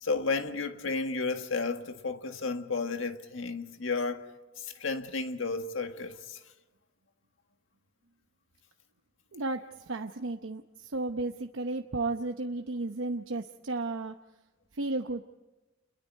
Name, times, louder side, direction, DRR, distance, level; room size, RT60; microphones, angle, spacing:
voice 1, 0.0-4.3 4.6-6.4, left 4 dB, 80° left, 1.7 m, -32 dB
voice 2, 9.3-14.1 14.7-15.2, right 2 dB, 85° right, 0.9 m, -33 dB
30.0 x 22.0 x 4.6 m
head